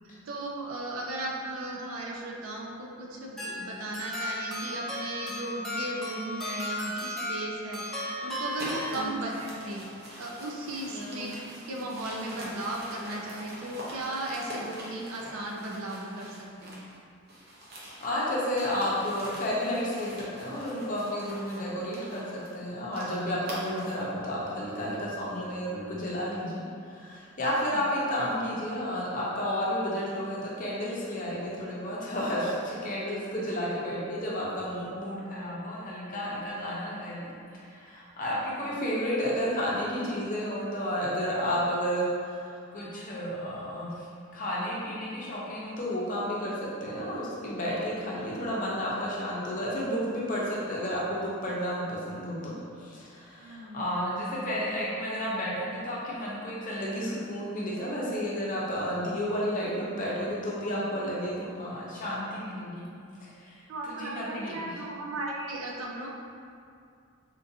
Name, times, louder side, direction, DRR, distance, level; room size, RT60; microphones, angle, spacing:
voice 1, 0.3-9.8 10.2-16.9 27.5-27.9 38.5-38.8 44.8-45.1 53.4-54.0 63.7-66.1, right 2 dB, 85° right, -2 dB, 0.5 m, -36 dB
sound 1, 3.4-9.5, left 1 dB, ahead, 0.5 m, -35 dB
sound 2, 8.5-17.0 17.3-24.1, equal, 50° right, 0.7 m, -44 dB
voice 2, 10.9-11.3 18.0-37.3 37.6-44.1 44.3-52.6 52.8-62.9 63.4-64.7, equal, 40° left, -6 dB, 0.7 m, -32 dB
3.7 x 2.6 x 2.6 m, 2.3 s
head